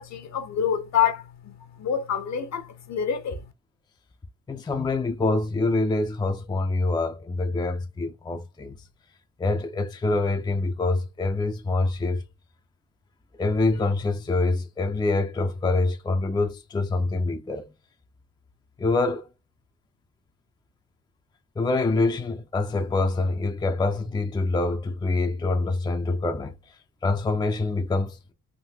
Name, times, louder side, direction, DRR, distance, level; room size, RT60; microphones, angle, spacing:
voice 1, 0.0-1.5 1.8-3.4, left 8 dB, 55° left, 0.9 m, -27 dB
voice 2, 4.5-8.7 9.4-12.2 13.4-17.7 18.8-19.3 21.6-26.5 27.0-28.3, left 3 dB, 15° left, 0.5 m, -25 dB
3.7 x 2.1 x 2.8 m
cardioid pair, 95°, 33 cm